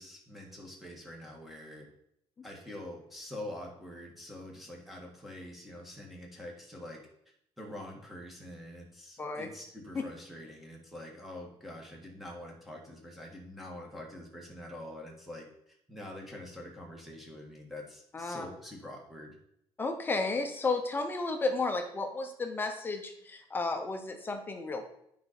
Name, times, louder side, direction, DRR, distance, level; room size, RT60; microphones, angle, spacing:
voice 1, 0.0-1.9 2.4-7.0 7.6-19.4, left 1 dB, ahead, -1 dB, 1.7 m, -45 dB
voice 2, 18.1-18.5 19.8-24.9, left 3 dB, 20° left, 5 dB, 0.9 m, -33 dB
9.5 x 5.1 x 4.3 m, 0.74 s
cardioid pair, 155°, 10 cm